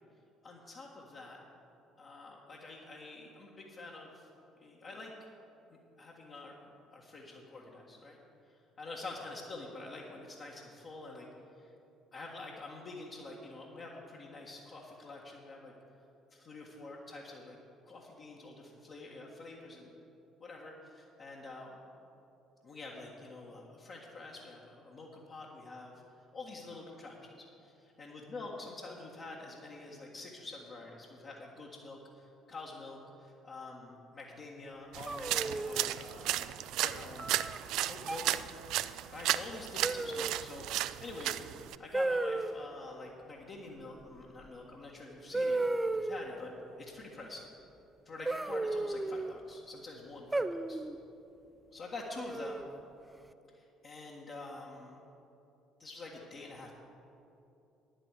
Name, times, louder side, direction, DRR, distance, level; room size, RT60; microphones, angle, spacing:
voice 1, 0.4-1.4 2.0-4.3 4.6-5.1 5.7-8.2 8.5-11.3 11.6-11.7 12.1-15.7 16.3-17.6 17.8-19.9 20.4-21.7 22.6-25.9 26.3-36.5 36.8-37.5 37.9-38.4 39.1-40.7 41.0-41.5 41.8-46.5 46.8-47.4 48.0-50.8 51.7-52.6 53.5-55.0 55.8-56.7, left 3 dB, 50° left, -4 dB, 1.6 m, -47 dB
sound 1, 34.9-41.8, right 13 dB, 65° right, 0.3 m, -34 dB
sound 2, 35.1-35.9 37.2-37.6 38.0-38.4 39.8-40.5 41.9-42.5 44.5-44.6 45.3-46.3 48.3-49.3 50.3-51.0 52.2-52.8, right 2 dB, 15° right, 0.5 m, -34 dB
10.0 x 8.0 x 8.2 m, 2.8 s
hypercardioid pair, 55°, 0 cm